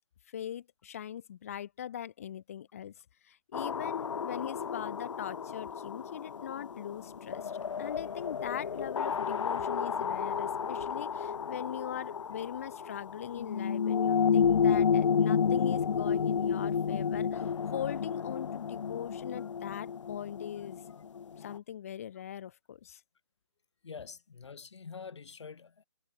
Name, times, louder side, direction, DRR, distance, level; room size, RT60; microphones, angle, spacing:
voice 1, 0.3-2.9 3.2-7.5 7.8-20.8 21.4-23.0, left 10 dB, 30° left, 0.6 m, -41 dB
sound 1, 3.5-21.6, left 7 dB, 85° left, 0.5 m, -31 dB
voice 2, 23.8-25.8, left 5 dB, 70° left, 2.0 m, -46 dB
hypercardioid pair, 165°, 15 cm